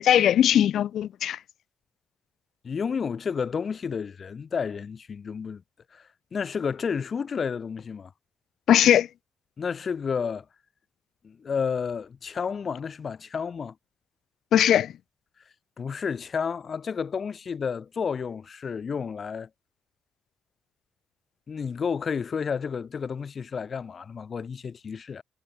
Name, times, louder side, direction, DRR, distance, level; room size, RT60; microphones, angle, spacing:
voice 1, 0.0-1.4 8.7-9.1 14.5-14.9, left 10 dB, 75° left, 0.3 m, -20 dB
voice 2, 2.6-5.6 5.9-8.1 9.6-10.4 11.2-13.7 15.8-19.5 21.5-25.2, left 6 dB, 45° left, 1.2 m, -31 dB
cardioid pair, 115°, 0 cm